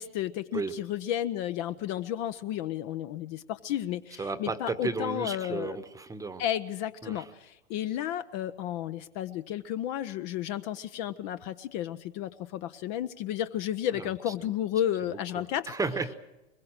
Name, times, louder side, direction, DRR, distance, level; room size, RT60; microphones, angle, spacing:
voice 1, 0.0-5.8 6.4-15.8, left 11 dB, 40° left, 11 dB, 0.8 m, -32 dB
voice 2, 4.2-6.4 7.0-7.2 13.9-14.5 15.1-16.1, right 3 dB, 10° right, 11 dB, 1.2 m, -34 dB
23.0 x 21.5 x 6.5 m, 0.98 s
figure-of-eight pair, 100°, 36 cm